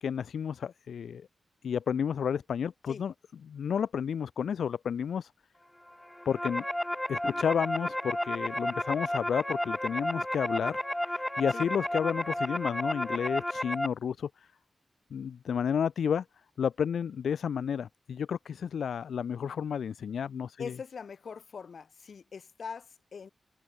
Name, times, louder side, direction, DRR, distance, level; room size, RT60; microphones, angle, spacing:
voice 1, 0.0-1.3 1.6-3.1 3.5-5.3 6.3-6.6 7.1-14.5 15.1-16.2 16.6-20.7, left 7 dB, 90° left, 0.5 m, -31 dB
sound 1, 6.0-13.9, left 1 dB, 10° left, 0.6 m, -32 dB
voice 2, 20.6-23.3, left 6 dB, 70° left, 1.3 m, -42 dB
cardioid pair, 70°, 0 cm